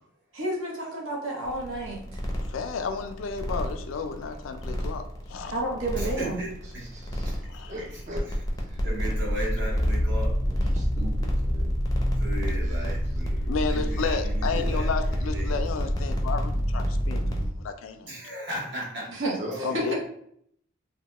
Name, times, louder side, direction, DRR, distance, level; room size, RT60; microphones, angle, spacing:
voice 1, 0.3-2.0 5.5-6.4 19.1-19.3 19.7-19.9, right 1 dB, 80° right, -2 dB, 0.9 m, -30 dB
sound 1, 1.5-17.5, equal, 20° left, 0.5 m, -28 dB
voice 2, 2.5-5.6 7.5-7.7 13.4-18.2 19.6-19.9, left 5 dB, 80° left, 8 dB, 0.4 m, -32 dB
voice 3, 6.0-6.9 7.2-7.3 7.8-8.0 8.8-10.4 12.1-15.6 18.1-19.2, right 1 dB, 60° right, -5 dB, 1.1 m, -36 dB
voice 4, 6.8-7.4 7.7-8.3 8.7-8.8 10.5-11.8 12.6-12.9 19.4-19.9, equal, 35° right, -2 dB, 0.5 m, -39 dB
sound 2, 9.7-15.5, left 1 dB, 20° right, 0.9 m, -32 dB
2.9 x 2.1 x 2.9 m, 0.69 s
head